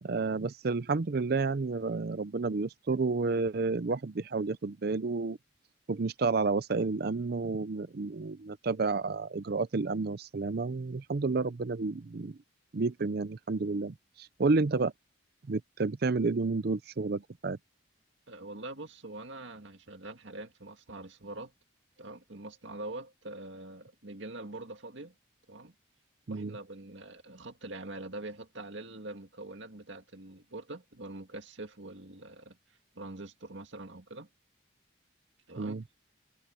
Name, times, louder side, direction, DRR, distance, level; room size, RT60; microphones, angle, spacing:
voice 1, 0.0-5.4 5.9-12.4 12.7-14.9 15.5-17.6 26.3-26.6 35.6-35.8, right 3 dB, 50° right, 0.5 m, -30 dB
voice 2, 18.3-21.5 22.0-25.1 25.5-25.7 26.3-32.6 32.9-34.3 35.5-35.8, right 2 dB, 65° right, 2.1 m, -44 dB
head